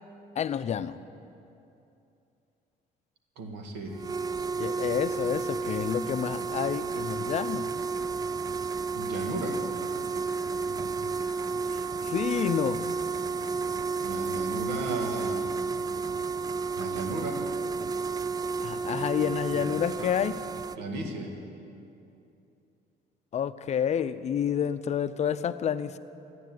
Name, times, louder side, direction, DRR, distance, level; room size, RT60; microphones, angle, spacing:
voice 1, 0.4-1.0 4.6-7.7 11.0-11.1 11.7-12.8 18.6-20.4 23.3-26.0, left 8 dB, 40° left, 12 dB, 0.5 m, -29 dB
voice 2, 3.4-4.0 8.9-9.6 14.0-15.4 16.7-17.4 20.8-21.4, right 2 dB, 90° right, 3 dB, 2.0 m, -35 dB
sound 1, 3.9-20.8, right 4 dB, 20° right, 0.3 m, -32 dB
14.5 x 9.4 x 9.3 m, 2.8 s
cardioid pair, 110°, 17 cm